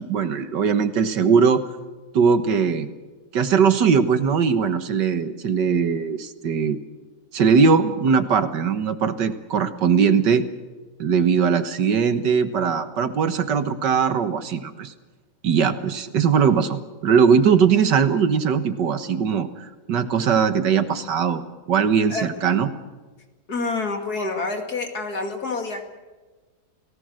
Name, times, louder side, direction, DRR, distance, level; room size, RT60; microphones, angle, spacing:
voice 1, 0.0-1.6 2.1-2.9 3.3-6.8 7.3-10.4 11.0-14.9 15.4-19.5 19.9-21.4 21.7-22.7, right 6 dB, 75° right, 10 dB, 1.9 m, -20 dB
voice 2, 23.5-25.8, left 3 dB, 55° left, 5 dB, 2.9 m, -27 dB
29.0 x 19.0 x 6.4 m, 1.3 s
omnidirectional pair, 1.9 m